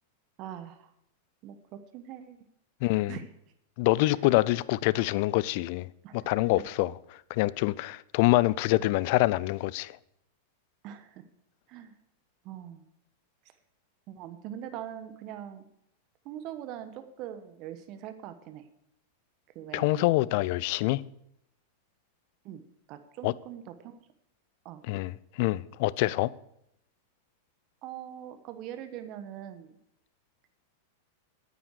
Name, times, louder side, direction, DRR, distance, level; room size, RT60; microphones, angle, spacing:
voice 1, 0.4-0.9 1.4-2.4 3.1-3.3 4.0-4.3 6.0-6.3 8.8-9.0 10.8-11.2 11.7-11.9 12.4-12.9 14.1-15.6 16.2-18.7 19.5-20.1 22.4-22.6 22.9-24.0 24.6-24.8 27.8-29.8, right 10 dB, 45° right, 1.1 m, -42 dB
voice 2, 2.8-3.2 3.8-5.9 6.1-6.9 7.3-9.9 19.7-21.0 23.2-23.3 24.9-25.1 25.4-26.3, left 19 dB, 55° left, 0.4 m, -25 dB
9.5 x 9.2 x 6.4 m
hypercardioid pair, 95°, 0 cm